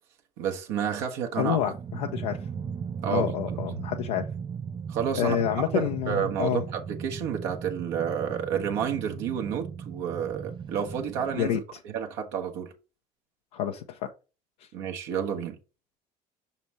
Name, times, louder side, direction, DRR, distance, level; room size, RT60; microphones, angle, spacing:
voice 1, 0.4-1.6 3.0-3.6 4.9-11.6 11.8-12.7 14.7-15.6, right 8 dB, 65° right, 1.2 m, -30 dB
voice 2, 1.4-2.4 3.1-4.3 5.2-6.6 11.4-11.6 13.5-14.1, left 10 dB, 75° left, 0.6 m, -28 dB
sound 1, 1.4-11.6, right 7 dB, 25° right, 0.5 m, -37 dB
6.1 x 5.5 x 3.2 m
hypercardioid pair, 60°, 20 cm